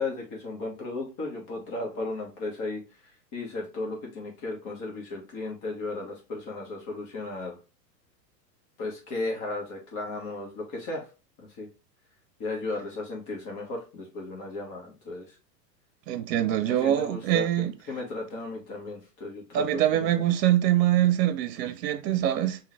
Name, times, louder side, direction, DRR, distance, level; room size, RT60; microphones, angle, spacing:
voice 1, 0.0-2.8 3.3-7.6 8.8-11.0 11.4-11.7 12.4-15.4 16.7-17.5 17.9-20.3, left 2 dB, 40° left, 1.5 m, -35 dB
voice 2, 16.1-17.7 19.5-22.6, right 12 dB, 70° right, 0.6 m, -24 dB
3.7 x 2.8 x 3.1 m
hypercardioid pair, 110°, 49 cm